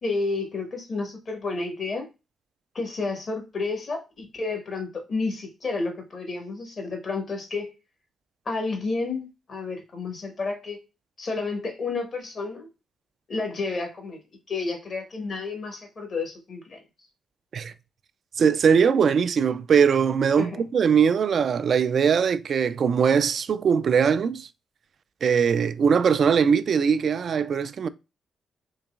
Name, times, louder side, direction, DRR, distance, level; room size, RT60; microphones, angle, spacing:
voice 1, 0.0-2.1 2.7-7.7 8.4-10.8 11.2-12.7 13.3-14.2 14.5-16.8 20.4-20.6, left 3 dB, 50° left, 1.5 m, -31 dB
voice 2, 18.4-24.5 25.2-27.9, right 6 dB, 60° right, 0.3 m, -21 dB
3.9 x 3.2 x 2.4 m
hypercardioid pair, 45°, 0 cm